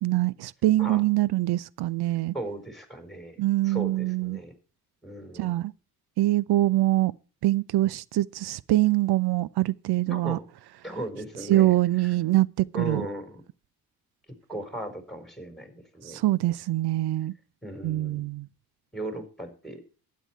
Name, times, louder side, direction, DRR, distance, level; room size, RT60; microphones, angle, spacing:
voice 1, 0.0-2.3 3.4-4.4 5.4-5.7 6.2-7.1 7.4-10.4 11.5-13.0 16.1-17.3 17.8-18.5, right 16 dB, 65° right, 0.6 m, -24 dB
voice 2, 2.3-3.4 3.6-4.6 5.0-5.5 10.1-10.5 10.8-11.8 12.0-12.2 12.7-13.4 14.5-16.2 17.6-18.3 18.9-19.8, right 1 dB, ahead, 4.5 m, -37 dB
12.0 x 9.4 x 4.5 m
hypercardioid pair, 55°, 42 cm